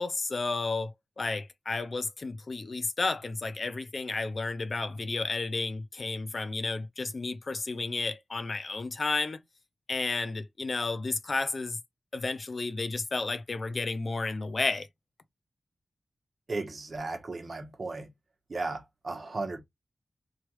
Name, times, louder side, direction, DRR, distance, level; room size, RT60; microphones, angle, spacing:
voice 1, 0.0-9.4 9.9-11.8 12.1-14.9, left 3 dB, 45° left, 0.4 m, -32 dB
voice 2, 16.5-18.1 18.5-19.6, right 3 dB, 45° right, 0.9 m, -35 dB
3.1 x 2.3 x 3.0 m
wide cardioid pair, 85°, 0 cm